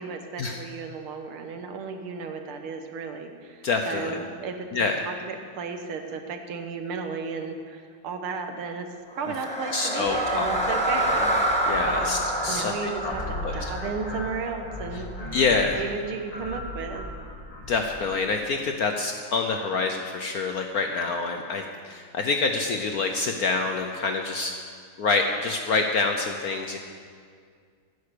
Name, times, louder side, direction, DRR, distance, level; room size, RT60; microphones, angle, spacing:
voice 1, 0.0-8.9 9.2-12.1 12.5-15.4 15.8-17.1, right 5 dB, 85° right, 6 dB, 2.0 m, -34 dB
voice 2, 3.6-4.2 4.7-5.0 9.7-10.8 11.6-13.1 13.4-13.7 15.3-15.8 17.7-24.5 25.0-26.8, left 4 dB, 65° left, 4 dB, 0.9 m, -26 dB
sound 1, 9.1-15.3, right 1 dB, 5° left, 1.2 m, -28 dB
sound 2, 10.0-18.1, left 2 dB, 25° left, 0.9 m, -38 dB
15.0 x 9.5 x 6.7 m, 2.1 s
omnidirectional pair, 2.3 m